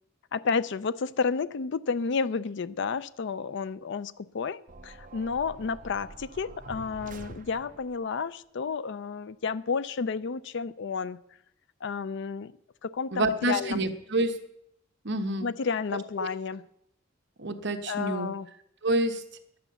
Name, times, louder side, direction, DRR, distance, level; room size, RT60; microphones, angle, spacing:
voice 1, 0.3-11.2 11.8-12.5 12.8-13.8 15.4-16.6 17.9-18.5, left 5 dB, 60° left, 0.5 m, -31 dB
sound 1, 4.7-8.0, right 2 dB, 40° right, 0.8 m, -46 dB
voice 2, 13.1-14.4 15.0-15.5 16.2-16.3 17.4-18.3 18.8-19.2, right 2 dB, 60° right, 1.2 m, -28 dB
11.0 x 9.4 x 7.0 m
head